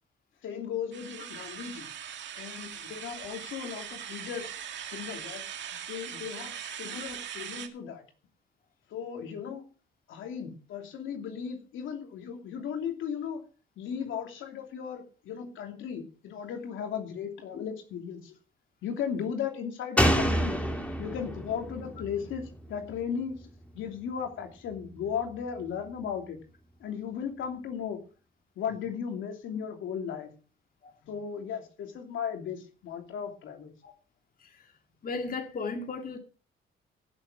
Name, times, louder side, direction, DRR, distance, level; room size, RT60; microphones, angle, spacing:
voice 1, 0.4-1.9 2.3-4.5 4.9-5.4 5.9-8.0 8.9-9.6 10.1-13.4 13.8-18.3 18.8-20.6 21.0-26.4 26.8-28.0 28.6-30.3 31.1-33.7, left 7 dB, 80° left, 2.9 m, -36 dB
sound 1, 0.9-7.7, right 9 dB, 65° right, 2.0 m, -40 dB
Slam, 20.0-23.4 23.7-23.8, equal, 5° left, 2.8 m, -29 dB
voice 2, 35.0-36.2, left 4 dB, 45° left, 2.3 m, -35 dB
15.5 x 7.3 x 5.6 m
cardioid pair, 90°, 20 cm